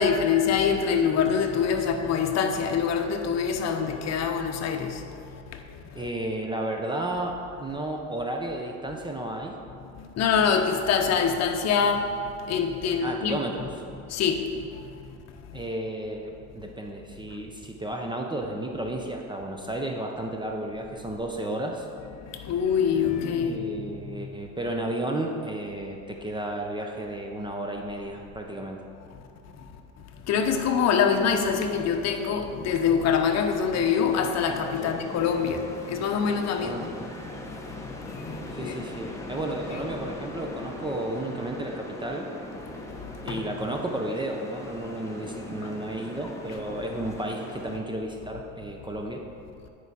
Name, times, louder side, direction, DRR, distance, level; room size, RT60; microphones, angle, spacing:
voice 1, 0.0-5.8 10.2-12.1 12.4-13.4 14.1-14.9 22.3-23.6 24.0-24.2 29.6-29.7 30.3-36.9 37.8-38.8 43.3-43.4, left 6 dB, 45° left, 5 dB, 0.8 m, -25 dB
voice 2, 5.9-9.6 13.0-13.8 15.5-21.9 23.4-28.8 34.8-35.0 36.6-37.1 38.5-42.3 43.2-49.2, right 1 dB, 15° right, 1 dB, 0.5 m, -33 dB
sound 1, 33.0-47.8, left 1 dB, 10° left, 0.9 m, -40 dB
9.5 x 4.6 x 4.1 m, 2.5 s
supercardioid pair, 115°, 37 cm